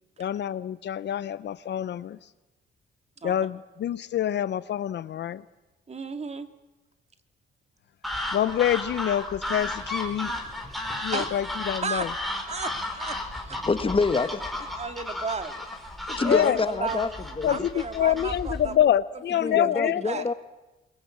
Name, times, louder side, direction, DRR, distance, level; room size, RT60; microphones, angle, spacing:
voice 1, 0.2-2.2 3.2-5.4 8.3-10.3 11.0-12.1 16.3-16.6 17.4-20.3, left 11 dB, 60° left, 16 dB, 0.8 m, -26 dB
voice 2, 5.9-6.5 11.1-11.3 11.8-12.1 12.5-13.6 14.7-15.5 16.2-17.2 17.5-18.7 19.3-20.3, right 4 dB, 35° right, 8 dB, 2.1 m, -34 dB
sound 1, 8.0-18.8, left 1 dB, ahead, 4.7 m, -34 dB
voice 3, 13.7-14.4 16.1-17.1 17.4-17.7 19.4-20.3, left 4 dB, 25° left, 11 dB, 1.4 m, -26 dB
22.5 x 21.5 x 8.6 m, 1.1 s
cardioid pair, 90°, 20 cm